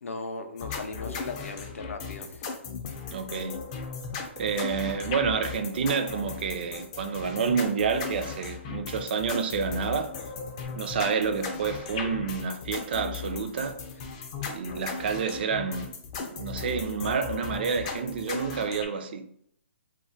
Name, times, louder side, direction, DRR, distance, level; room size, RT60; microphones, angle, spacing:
voice 1, 0.0-2.5, left 3 dB, 85° left, 0.5 m, -38 dB
sound 1, 0.6-18.9, left 5 dB, 30° left, 0.4 m, -37 dB
voice 2, 3.1-3.6 4.4-10.1 10.8-13.8 14.5-15.9 16.3-19.3, right 5 dB, 50° right, 0.3 m, -29 dB
2.2 x 2.1 x 3.7 m
hypercardioid pair, 155°, 7 cm